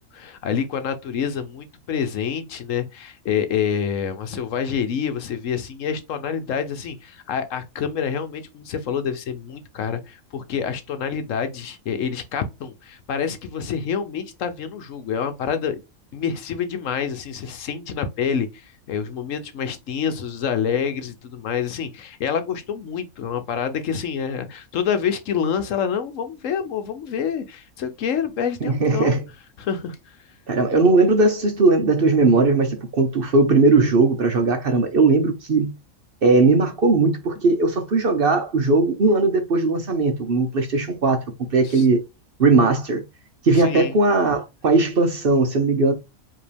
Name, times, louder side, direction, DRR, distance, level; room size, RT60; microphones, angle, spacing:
voice 1, 0.1-15.8 16.1-29.2 29.6-30.2 41.6-41.9 43.5-43.9, left 7 dB, 70° left, 1.1 m, -27 dB
voice 2, 28.6-29.2 30.5-35.7 36.2-41.3 41.5-42.0 42.4-43.0 43.4-45.9, right 3 dB, 50° right, 0.9 m, -18 dB
5.0 x 3.0 x 3.3 m
omnidirectional pair, 1.5 m